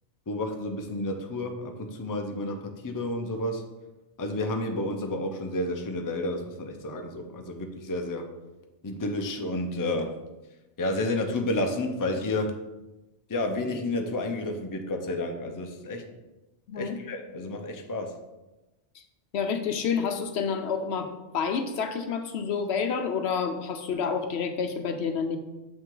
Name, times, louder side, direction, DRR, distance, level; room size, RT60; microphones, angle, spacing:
voice 1, 0.3-3.6 4.2-8.3 8.8-10.1 10.8-12.5 13.3-16.0 16.7-18.1, left 2 dB, 20° left, 4 dB, 0.6 m, -31 dB
voice 2, 16.7-17.0 18.9-19.0 19.3-25.4, left 6 dB, 70° left, 7 dB, 0.9 m, -29 dB
7.2 x 5.7 x 3.8 m, 1.0 s
omnidirectional pair, 1.2 m